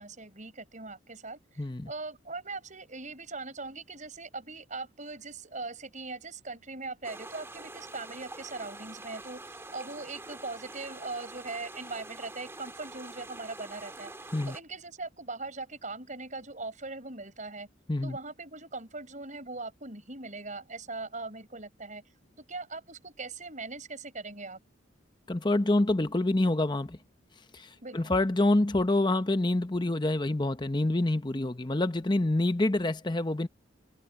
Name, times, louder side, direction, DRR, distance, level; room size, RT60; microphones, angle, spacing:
voice 1, 0.0-17.7 18.0-22.0 22.4-24.6 27.8-28.1, right 3 dB, 40° right, 7.6 m, -40 dB
voice 2, 1.6-1.9 14.3-14.6 17.9-18.2 25.3-27.0 27.5-33.5, left 2 dB, 20° left, 0.8 m, -27 dB
sound 1, 7.0-14.6, right 2 dB, 15° right, 2.3 m, -45 dB
head